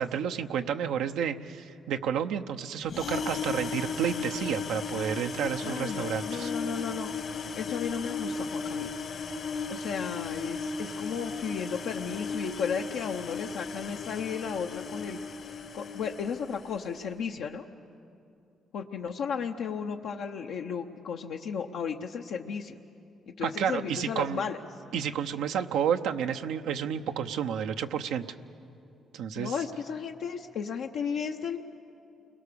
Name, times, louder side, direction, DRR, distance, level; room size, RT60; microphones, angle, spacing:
voice 1, 0.0-6.5 23.4-24.4 24.9-28.2 29.1-29.6, right 8 dB, 90° right, 6 dB, 0.8 m, -30 dB
sound 1, 2.9-16.8, left 4 dB, 60° left, 1.5 m, -36 dB
voice 2, 5.6-7.1 7.6-8.9 9.7-15.2 15.7-17.6 18.7-22.7 23.3-24.6 29.3-31.6, left 6 dB, 80° left, 2 dB, 0.9 m, -34 dB
29.0 x 22.5 x 6.9 m, 2.6 s
cardioid pair, 90°, 0 cm